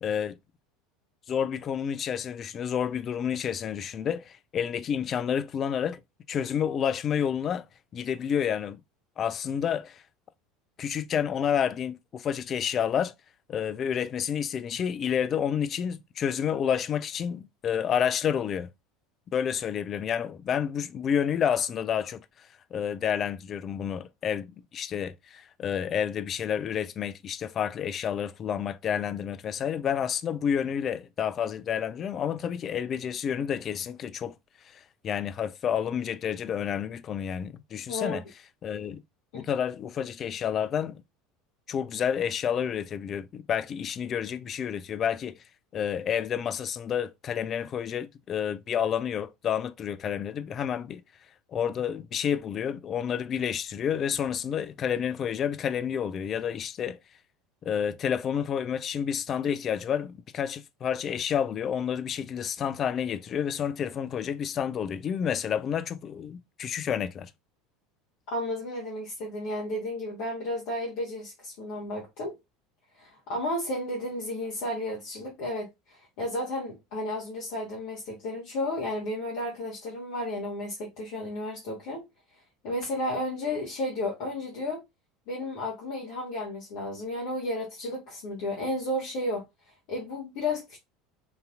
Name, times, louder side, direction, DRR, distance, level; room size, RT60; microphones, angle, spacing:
voice 1, 0.0-0.4 1.3-6.0 6.3-7.6 7.9-8.8 9.2-10.0 10.8-13.1 13.5-18.7 19.3-22.2 22.7-34.3 34.7-38.2 38.6-39.0 39.3-41.0 41.7-45.4 45.7-51.0 51.5-57.0 57.7-67.3, left 8 dB, 35° left, 0.3 m, -29 dB
voice 2, 37.9-38.2 39.3-39.4 68.3-72.3 73.0-82.0 82.6-84.8 85.3-89.4 89.9-90.8, left 1 dB, 55° left, 1.1 m, -33 dB
3.7 x 2.7 x 2.4 m
figure-of-eight pair, 70°, 0 cm